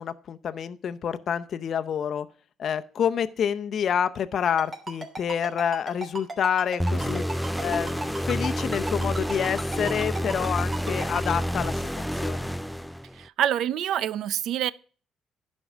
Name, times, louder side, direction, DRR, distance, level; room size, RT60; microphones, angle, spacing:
voice 1, 0.0-2.3 2.6-7.2 7.6-11.9 12.2-12.5, left 8 dB, 60° left, 0.7 m, -28 dB
Ringtone, 4.6-11.3, right 2 dB, 35° right, 3.1 m, -35 dB
sound 1, 6.8-13.3, equal, ahead, 0.4 m, -29 dB
voice 2, 13.2-14.7, right 11 dB, 80° right, 0.5 m, -26 dB
11.0 x 5.4 x 6.1 m
cardioid pair, 90°, 0 cm